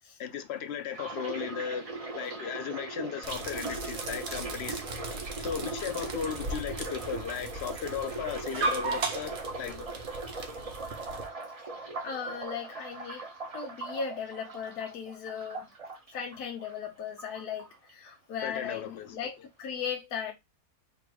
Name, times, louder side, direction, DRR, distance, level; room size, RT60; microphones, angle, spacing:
voice 1, 0.2-1.9 2.1-4.8 5.4-9.9 18.4-19.1, left 7 dB, 60° left, 0.7 m, -36 dB
sound 1, 0.9-16.9 17.2-18.1 18.4-18.7, right 3 dB, 35° right, 0.6 m, -40 dB
sound 2, 3.2-11.3, right 3 dB, 55° right, 1.1 m, -37 dB
voice 2, 11.8-13.2 13.5-15.7 16.1-20.3, left 7 dB, 85° left, 1.3 m, -37 dB
3.9 x 2.6 x 4.6 m
omnidirectional pair, 1.6 m